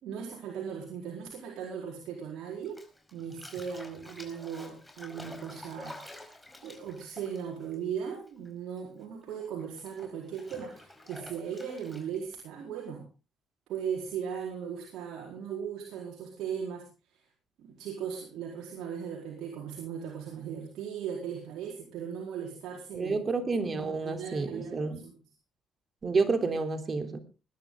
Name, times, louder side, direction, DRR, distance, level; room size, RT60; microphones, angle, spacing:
voice 1, 0.0-2.8 3.1-6.0 6.6-13.1 13.7-17.2 17.6-25.1, right 7 dB, 75° right, -1 dB, 4.5 m, -38 dB
Bathtub (filling or washing), 2.6-8.5 8.7-12.3, left 1 dB, 10° left, 4.8 m, -49 dB
voice 2, 22.9-25.0 26.0-27.2, right 4 dB, 40° right, 7 dB, 3.4 m, -29 dB
20.5 x 11.0 x 3.9 m, 0.32 s
supercardioid pair, 75°, 0 cm